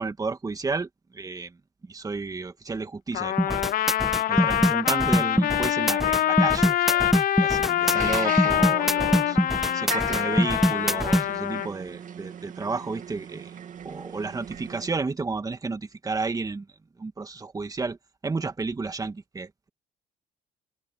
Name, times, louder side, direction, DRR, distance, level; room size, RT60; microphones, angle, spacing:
voice 1, 0.0-1.5 1.9-3.6 4.3-7.1 7.4-9.4 9.7-13.6 13.8-16.7 17.0-18.0 18.2-19.7, right 4 dB, 20° right, 2.1 m, -32 dB
Trumpet, 3.1-11.7, left 12 dB, 60° left, 0.7 m, -25 dB
sound 1, 3.4-11.2, equal, ahead, 1.2 m, -23 dB
sound 2, 7.8-14.9, right 8 dB, 50° right, 2.6 m, -39 dB
open air
cardioid pair, 110°, 17 cm